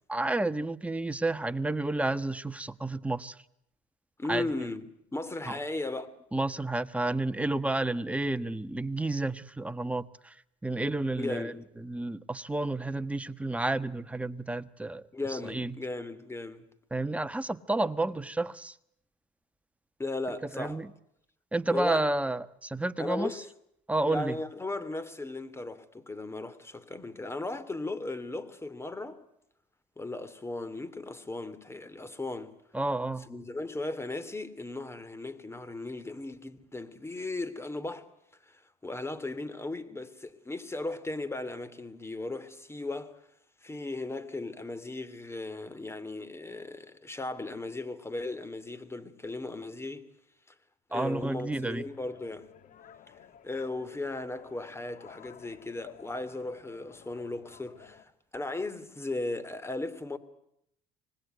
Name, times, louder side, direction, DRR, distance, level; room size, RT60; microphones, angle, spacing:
voice 1, 0.1-3.4 4.3-4.5 5.5-5.6 6.3-10.4 10.6-15.0 15.3-15.7 16.9-18.8 20.5-20.9 21.5-23.3 23.9-24.4 32.7-33.3 50.9-51.8, right 2 dB, 10° right, 1.3 m, -31 dB
voice 2, 4.2-6.1 11.2-11.6 15.1-16.6 20.0-20.8 21.7-22.1 23.0-23.5 24.1-29.2 30.0-32.5 33.3-38.1 38.4-43.1 43.6-50.1 50.9-52.5 53.4-60.2, left 2 dB, 15° left, 2.8 m, -36 dB
sound 1, 51.4-58.0, left 9 dB, 55° left, 2.2 m, -54 dB
25.5 x 20.0 x 9.3 m
supercardioid pair, 85°, 16 cm